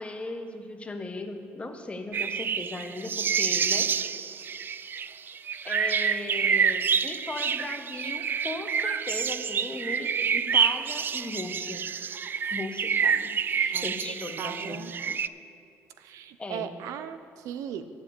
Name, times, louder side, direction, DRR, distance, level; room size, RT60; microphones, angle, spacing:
voice 1, 0.0-3.9 5.6-11.8 12.5-15.2 16.4-16.7, left 2 dB, 20° left, 6 dB, 1.1 m, -37 dB
sound 1, 2.1-15.3, right 7 dB, 40° right, 0.3 m, -28 dB
voice 2, 13.7-14.9 16.0-17.9, right 9 dB, 85° right, 11 dB, 0.7 m, -38 dB
8.9 x 7.6 x 8.5 m, 2.5 s
cardioid pair, 100°, 5 cm